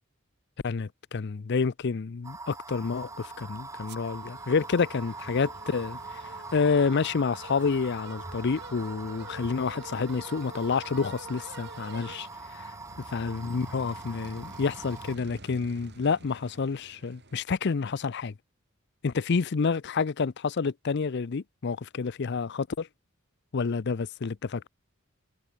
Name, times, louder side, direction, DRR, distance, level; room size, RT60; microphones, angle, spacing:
voice 1, 0.6-6.0 6.5-12.3 12.5-12.7 13.1-18.3 19.0-22.9 23.5-24.6, left 5 dB, 55° left, 0.5 m, -29 dB
sound 1, 2.2-15.2, right 3 dB, 15° right, 1.5 m, -43 dB
sound 2, 2.9-17.4, right 2 dB, 55° right, 4.6 m, -48 dB
head